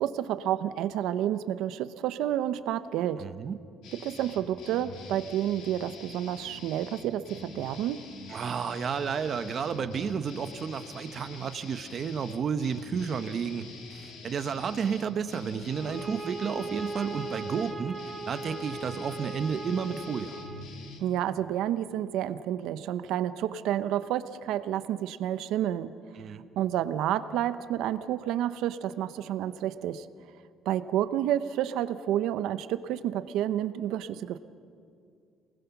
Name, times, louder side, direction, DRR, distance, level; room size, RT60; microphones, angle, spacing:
voice 1, 0.0-3.2 3.9-8.0 21.0-25.9 26.6-30.1 30.7-34.4, right 11 dB, 75° right, 12 dB, 0.8 m, -30 dB
voice 2, 3.2-3.6 8.3-13.7 13.9-18.0 18.3-20.4 26.2-26.4, right 6 dB, 35° right, 10 dB, 0.9 m, -31 dB
sound 1, 3.8-21.0, left 4 dB, 65° left, 2.8 m, -46 dB
sound 2, 15.7-20.7, right 3 dB, 5° right, 1.5 m, -39 dB
28.0 x 20.0 x 6.0 m, 2.4 s
cardioid pair, 175°, 0 cm